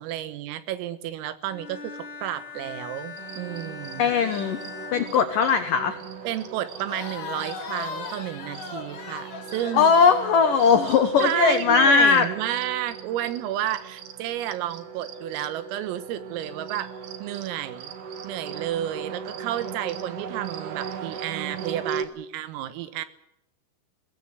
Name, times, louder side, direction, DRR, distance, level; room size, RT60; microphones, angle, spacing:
voice 1, 0.0-4.1 6.3-9.9 11.2-16.9 17.2-17.9 18.2-23.1, right 12 dB, 90° right, 13 dB, 4.0 m, -31 dB
Bowed string instrument, 1.5-6.0, left 5 dB, 30° left, 3.2 m, -41 dB
sound 1, 3.2-22.1, right 6 dB, 60° right, 2.2 m, -38 dB
voice 2, 4.0-4.6 4.9-6.0 9.7-12.3, left 6 dB, 90° left, 7 dB, 1.9 m, -19 dB
Crowd, 6.7-11.6, left 5 dB, 50° left, 5.2 m, -38 dB
22.0 x 17.5 x 8.1 m, 0.79 s
omnidirectional pair, 5.8 m